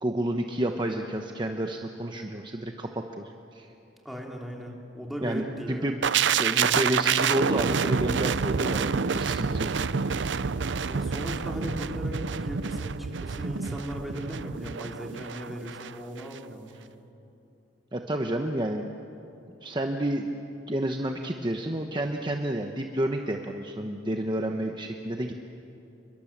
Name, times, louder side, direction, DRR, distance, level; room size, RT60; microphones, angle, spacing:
voice 1, 0.0-3.7 5.2-6.0 6.4-9.7 17.9-18.9 19.6-20.3 20.7-25.3, right 1 dB, 25° right, 4 dB, 1.0 m, -30 dB
voice 2, 4.0-5.9 10.8-16.8, equal, ahead, -1 dB, 3.2 m, -37 dB
sound 1, 6.0-15.9 16.2-16.4, right 6 dB, 70° right, 0.6 m, -28 dB
29.0 x 22.5 x 7.4 m, 2.9 s
head